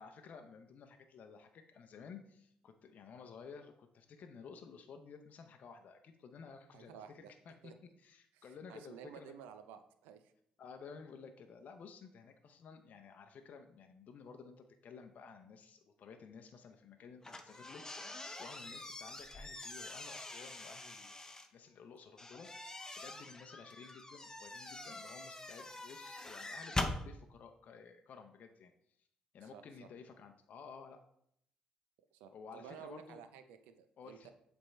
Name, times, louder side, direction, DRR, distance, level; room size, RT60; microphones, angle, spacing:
voice 1, 0.0-7.7 8.0-9.3 10.6-21.1 21.5-28.7 29.3-31.0 32.3-33.2 34.0-34.3, left 5 dB, 60° left, 5 dB, 0.6 m, -54 dB
voice 2, 6.7-7.3 7.6-7.7 8.3-10.3 29.4-29.9 32.1-34.3, right 8 dB, 85° right, 9 dB, 0.5 m, -53 dB
sound 1, 17.2-21.5 22.2-27.0, left 2 dB, 20° left, 0.9 m, -44 dB
7.5 x 3.5 x 4.2 m, 0.71 s
supercardioid pair, 60°, 3 cm